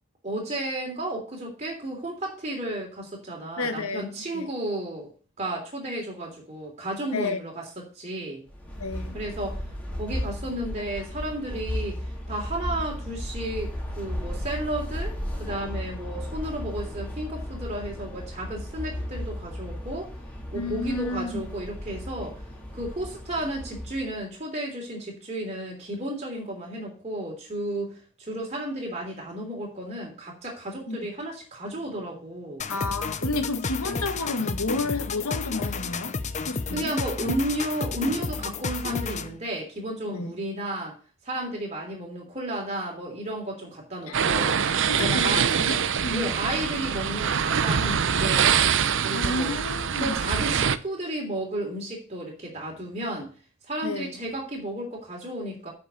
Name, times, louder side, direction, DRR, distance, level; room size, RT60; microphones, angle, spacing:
voice 1, 0.2-5.1 5.4-7.7 7.9-8.4 9.1-9.6 9.9-20.1 20.5-22.4 22.7-32.7 36.7-41.0 41.2-44.6 45.0-45.5 46.1-48.6 49.0-49.5 50.0-53.3 53.6-55.7, right 1 dB, 30° right, 3.3 m, -33 dB
voice 2, 3.6-4.0 4.3-4.5 7.1-7.4 8.8-9.2 20.5-21.4 30.9-31.0 32.7-36.2 36.5-36.9 40.1-40.3 44.1-44.2 44.9-46.2 49.1-50.1 53.8-54.2, left 3 dB, 75° left, 1.7 m, -31 dB
sound 1, 8.5-24.2, equal, 5° left, 3.4 m, -35 dB
sound 2, 32.6-39.4, left 4 dB, 30° left, 0.7 m, -31 dB
sound 3, 44.1-50.8, right 7 dB, 55° right, 0.7 m, -24 dB
8.9 x 6.2 x 7.0 m
head